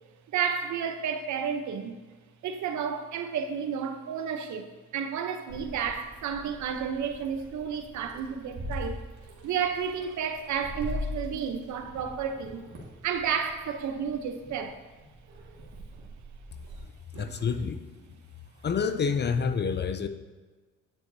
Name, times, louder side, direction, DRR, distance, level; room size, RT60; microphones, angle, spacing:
voice 1, 0.3-2.0 2.4-9.0 9.4-12.7 13.0-14.7 17.1-17.4, right 7 dB, 70° right, 0.8 m, -31 dB
Meow, 5.5-16.8, left 1 dB, 85° right, 2.0 m, -42 dB
voice 2, 17.2-17.8 18.6-20.1, left 6 dB, 35° left, 0.5 m, -28 dB
9.2 x 7.8 x 2.7 m
cardioid pair, 90°, 30 cm